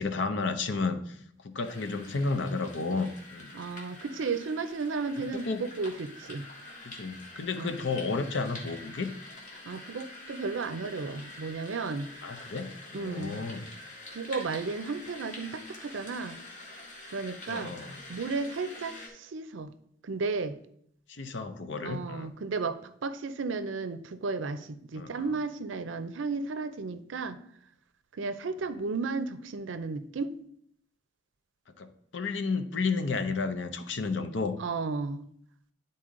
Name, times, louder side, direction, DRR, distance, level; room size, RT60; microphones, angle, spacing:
voice 1, 0.0-3.5 5.3-5.7 6.8-9.1 12.2-13.7 17.5-18.0 21.1-22.3 24.9-25.2 31.8-34.6, left 4 dB, 70° left, 8 dB, 0.7 m, -32 dB
sound 1, 1.6-19.1, left 2 dB, 40° left, 1.6 m, -46 dB
voice 2, 3.5-6.5 7.6-7.8 9.6-12.1 12.9-13.4 14.1-16.4 17.1-17.7 18.1-19.7 20.0-20.6 21.8-27.4 28.1-30.3 34.6-35.2, right 4 dB, 80° right, 12 dB, 0.5 m, -34 dB
10.0 x 4.1 x 3.7 m, 0.67 s
head